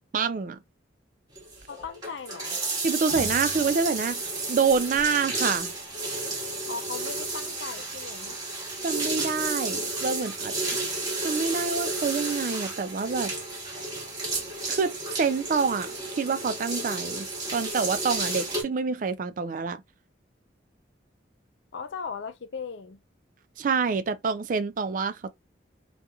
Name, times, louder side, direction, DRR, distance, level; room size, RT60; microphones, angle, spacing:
voice 1, 0.1-0.6 2.8-4.2 4.5-5.7 8.8-10.6 11.2-13.3 14.7-19.8 23.6-25.3, right 5 dB, 45° right, 0.3 m, -27 dB
sound 1, 1.4-18.6, right 2 dB, 20° right, 1.0 m, -32 dB
voice 2, 1.7-2.6 6.6-8.4 21.7-23.0, left 5 dB, 80° left, 0.5 m, -38 dB
2.8 x 2.4 x 2.3 m
head